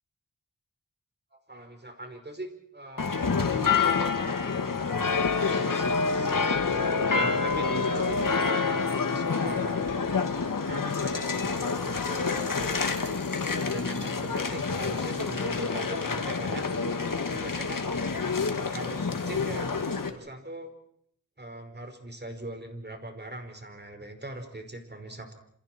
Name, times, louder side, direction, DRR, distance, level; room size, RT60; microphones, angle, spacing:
voice 1, 1.3-3.8 4.1-4.5 5.1-9.8 10.7-12.3 12.6-13.2 13.7-16.7 17.3-17.9 18.6-19.7 20.1-20.7 21.4-25.3, right 1 dB, 30° right, 6 dB, 5.1 m, -41 dB
sound 1, 3.0-20.1, left 4 dB, 80° left, 2.4 m, -27 dB
28.5 x 28.5 x 4.6 m, 0.67 s
wide cardioid pair, 70°, 32 cm